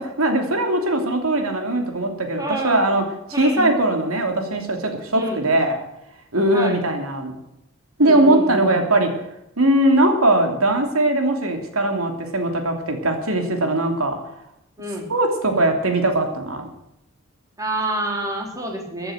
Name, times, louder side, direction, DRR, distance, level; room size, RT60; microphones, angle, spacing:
voice 1, 0.0-3.0 3.4-5.8 6.3-7.4 8.0-9.1 9.6-14.2 15.1-16.7, right 1 dB, 90° right, 4 dB, 2.9 m, -20 dB
voice 2, 2.4-2.9 3.3-3.7 5.2-5.4 6.5-6.8 8.0-8.7 14.8-15.1 17.6-19.1, right 1 dB, 15° right, 0 dB, 3.8 m, -28 dB
15.0 x 10.0 x 7.9 m, 0.83 s
head